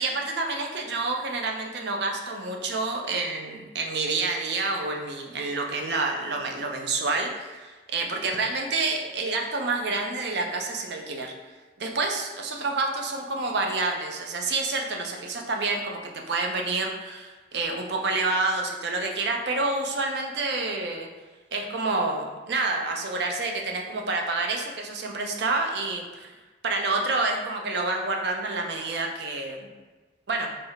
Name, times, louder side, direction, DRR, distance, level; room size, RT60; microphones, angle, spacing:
voice 1, 0.0-11.3 11.8-21.1 21.5-26.3 26.6-29.7 30.3-30.5, right 3 dB, 65° right, 2 dB, 0.5 m, -28 dB
3.4 x 2.3 x 4.1 m, 1.3 s
head